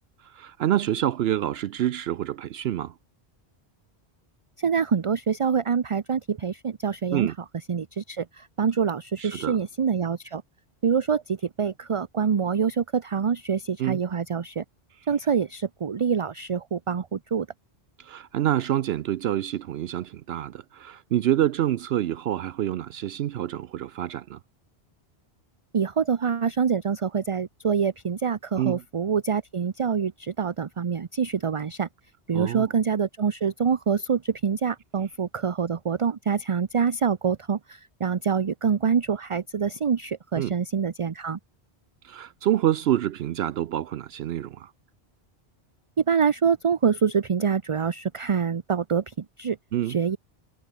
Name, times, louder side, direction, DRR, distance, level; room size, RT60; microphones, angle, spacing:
voice 1, 0.2-2.9 7.1-7.3 9.2-9.6 13.8-14.0 18.0-24.4 28.6-28.8 32.3-32.7 40.4-40.5 42.0-44.7 49.7-50.0, right 12 dB, 75° right, 0.8 m, -27 dB
voice 2, 4.6-7.3 7.7-10.4 10.8-14.6 15.1-17.5 25.7-31.9 32.3-41.4 46.0-49.6 49.8-50.2, right 6 dB, 35° right, 0.6 m, -25 dB
omnidirectional pair, 1.1 m